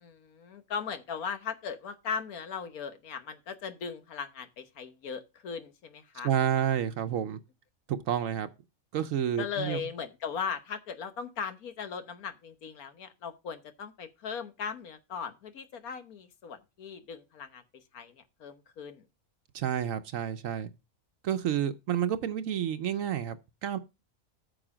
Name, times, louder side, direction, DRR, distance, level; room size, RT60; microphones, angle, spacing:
voice 1, 0.0-6.3 9.4-17.6 17.9-18.1 18.4-19.0, left 6 dB, 90° left, 1.6 m, -38 dB
voice 2, 6.2-7.4 8.1-8.5 8.9-9.8 19.5-20.7 21.2-23.8, right 9 dB, 70° right, 1.0 m, -30 dB
9.0 x 6.7 x 4.9 m
omnidirectional pair, 1.5 m